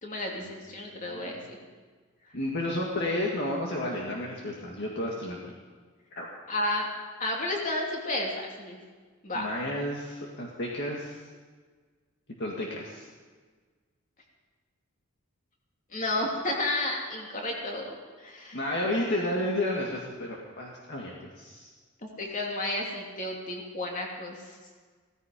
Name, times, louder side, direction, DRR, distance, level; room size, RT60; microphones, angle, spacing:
voice 1, 0.0-1.6 6.5-6.9 7.2-8.8 9.2-9.5 15.9-17.9 18.2-18.6 22.0-24.6, left 1 dB, 35° left, 0 dB, 2.8 m, -32 dB
voice 2, 0.8-1.5 2.3-5.5 6.2-6.3 9.3-11.2 12.4-13.1 18.5-21.7, left 1 dB, 55° left, -2 dB, 1.9 m, -32 dB
16.5 x 14.5 x 5.2 m, 1.5 s
head